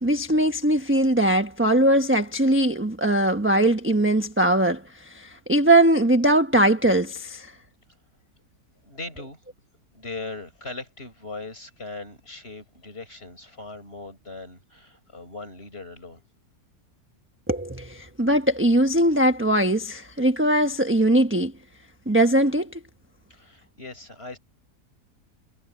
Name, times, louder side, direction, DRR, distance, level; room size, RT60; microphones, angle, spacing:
voice 1, 0.0-7.5 17.5-21.5 22.1-22.8, right 1 dB, 10° right, 1.1 m, -21 dB
voice 2, 8.8-9.4 9.9-16.2 23.3-24.4, left 3 dB, 35° left, 6.9 m, -39 dB
omnidirectional pair, 1.7 m